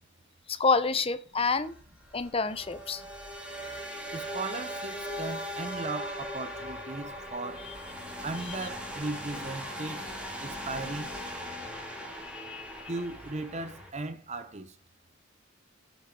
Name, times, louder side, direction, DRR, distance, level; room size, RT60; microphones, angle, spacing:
voice 1, 0.5-1.7 2.1-3.0 7.7-7.8 12.2-12.9, left 4 dB, 30° left, 0.7 m, -28 dB
sound 1, 1.5-13.9, equal, 5° right, 2.6 m, -39 dB
voice 2, 4.1-7.6 8.2-10.1 10.4-11.1 12.9-14.7, right 3 dB, 35° right, 0.8 m, -37 dB
8.8 x 6.4 x 5.9 m
head